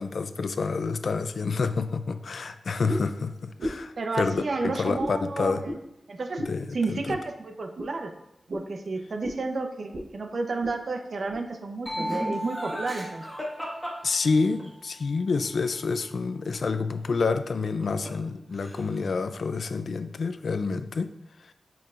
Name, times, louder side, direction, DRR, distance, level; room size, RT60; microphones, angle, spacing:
voice 1, 0.0-5.6 6.5-7.2 14.0-21.2, left 4 dB, 70° left, 10 dB, 0.3 m, -28 dB
sound 1, 2.9-3.2 3.6-3.9 4.3-4.5 5.0-5.2 5.6-5.8 6.4-6.6 7.1-7.2 7.7-7.9 8.5-8.7 9.2-9.4 9.9-10.1 10.4-10.8 11.3-11.4 12.0-12.2, equal, 80° right, 1.0 m, -34 dB
voice 2, 4.0-5.7 6.1-6.4 6.7-8.1 8.5-13.3, right 3 dB, 60° right, 4 dB, 0.6 m, -31 dB
sound 2, 11.9-15.5, equal, 20° left, 1.7 m, -38 dB
Laughter, 12.0-14.7 17.5-18.3 18.5-19.1, equal, ahead, 1.5 m, -36 dB
8.9 x 4.5 x 2.4 m, 0.84 s
wide cardioid pair, 100°, 0 cm